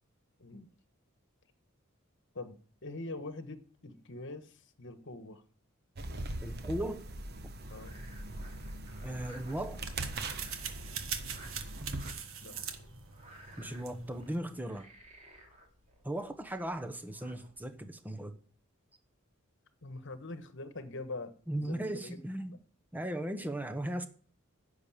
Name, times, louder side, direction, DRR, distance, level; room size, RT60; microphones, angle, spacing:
voice 1, 2.3-5.4 7.7-8.0 12.4-12.6 19.8-22.2 22.5-22.6, left 2 dB, 60° left, 1.4 m, -44 dB
sound 1, 5.9-12.1, right 2 dB, 50° right, 1.1 m, -41 dB
voice 2, 6.4-7.1 9.0-9.8 13.6-14.9 16.0-18.3 21.5-22.5 22.9-24.1, right 1 dB, 10° right, 1.0 m, -37 dB
Frog, 7.4-17.7, right 1 dB, 35° right, 3.0 m, -57 dB
sound 2, 9.0-14.4, right 7 dB, 70° right, 1.6 m, -43 dB
10.5 x 6.7 x 8.8 m
head